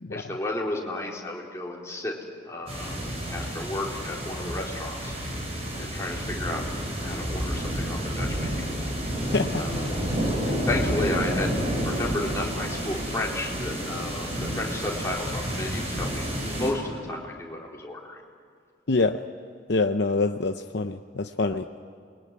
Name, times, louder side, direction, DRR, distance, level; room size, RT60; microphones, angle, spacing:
voice 1, 0.1-2.1 2.4-3.0 3.3-5.2 5.8-6.6 7.0-8.7 9.5-10.4 10.7-11.5 11.8-18.2, left 1 dB, 15° left, -2 dB, 4.0 m, -33 dB
sound 1, 2.7-16.7, equal, 35° right, 7.4 m, -30 dB
voice 2, 18.9-19.2 19.7-21.7, left 3 dB, 60° left, 6 dB, 0.8 m, -25 dB
28.0 x 22.0 x 9.5 m, 2.2 s
head